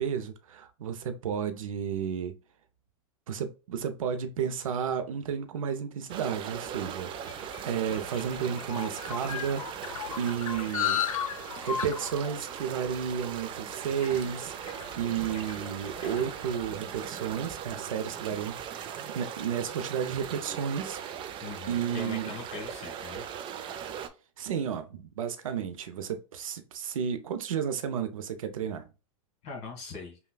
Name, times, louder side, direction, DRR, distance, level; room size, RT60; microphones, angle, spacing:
voice 1, 0.0-2.4 3.3-9.7 10.2-21.0 21.7-22.3 24.4-28.8, right 8 dB, 90° right, 0.5 m, -32 dB
sound 1, 6.1-24.1, right 8 dB, 30° right, 0.4 m, -39 dB
sound 2, 6.6-17.1, left 9 dB, 90° left, 0.6 m, -37 dB
voice 2, 21.4-23.2 29.4-30.2, left 4 dB, 40° left, 1.6 m, -40 dB
5.5 x 2.2 x 2.2 m
hypercardioid pair, 120°, 17 cm